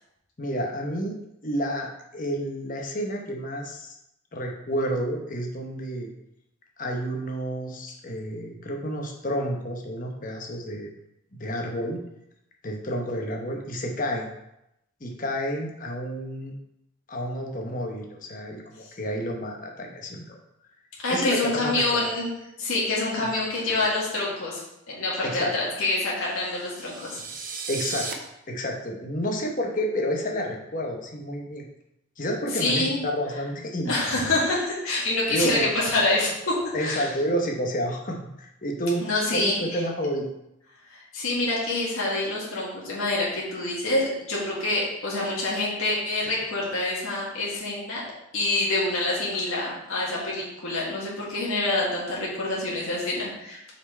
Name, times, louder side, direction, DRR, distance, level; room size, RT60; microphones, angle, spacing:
voice 1, 0.4-1.2 1.4-4.0 4.3-6.1 6.8-10.9 11.4-12.0 12.6-14.3 15.0-16.5 17.1-20.4 21.1-21.7 23.2-23.3 25.2-25.5 27.7-28.1 28.5-31.7 32.2-34.0 35.3-35.5 36.7-39.0 39.3-40.3, equal, 40° left, 1 dB, 1.0 m, -30 dB
voice 2, 21.0-22.3 22.6-27.2 32.5-33.0 33.9-36.5 36.8-37.1 39.0-39.8 40.9-48.0 48.3-53.7, left 2 dB, 85° left, -5 dB, 1.9 m, -26 dB
sound 1, 26.2-28.1, right 5 dB, 40° right, 0.7 m, -36 dB
6.0 x 4.4 x 4.3 m, 0.85 s
head